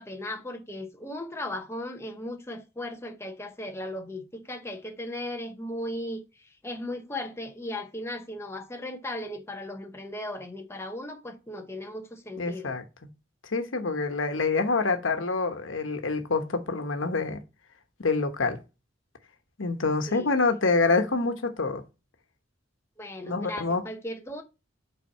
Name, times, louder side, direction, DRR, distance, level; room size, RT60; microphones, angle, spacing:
voice 1, 0.0-12.7 20.1-20.3 23.0-24.4, left 1 dB, 15° left, 0.9 m, -37 dB
voice 2, 12.4-12.8 13.4-17.4 18.0-18.6 19.6-21.8 23.2-23.8, left 3 dB, 85° left, 1.1 m, -26 dB
5.7 x 4.1 x 5.5 m
head